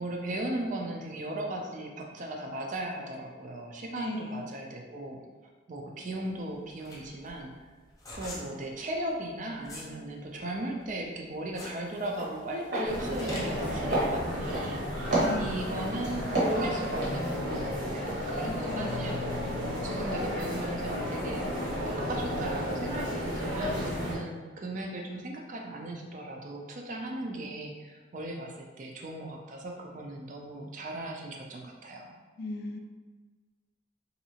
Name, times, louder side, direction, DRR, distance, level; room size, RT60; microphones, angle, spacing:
voice 1, 0.0-5.2 5.7-7.6 8.1-19.2 19.8-21.5 21.8-32.1, right 1 dB, 45° right, 1 dB, 0.4 m, -37 dB
voice 2, 3.9-4.5 15.1-15.7 18.4-19.0 32.4-32.8, left 2 dB, 60° left, 5 dB, 0.3 m, -37 dB
sound 1, 6.3-9.9 10.3-13.7, left 1 dB, 20° left, 0.7 m, -44 dB
sound 2, 11.6-11.8 12.1-12.3 12.7-12.9 13.2-13.6 13.9-14.7 15.1-15.9 16.3-17.6 18.0-18.1, right 2 dB, 60° right, 1.0 m, -29 dB
sound 3, 12.8-24.2, equal, 75° right, 1.4 m, -33 dB
3.1 x 2.7 x 2.8 m, 1.3 s
head